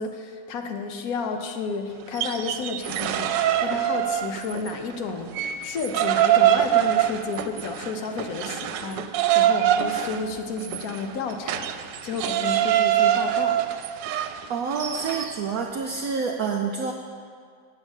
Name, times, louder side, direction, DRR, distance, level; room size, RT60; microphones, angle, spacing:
voice 1, 0.0-9.1 9.3-13.6, left 4 dB, 60° left, 5 dB, 1.2 m, -32 dB
sound 1, 2.0-4.8 5.1-15.4, right 12 dB, 90° right, 1.3 m, -24 dB
voice 2, 14.5-16.9, right 5 dB, 65° right, 1 dB, 1.0 m, -28 dB
8.4 x 6.7 x 8.0 m, 2.1 s
omnidirectional pair, 1.9 m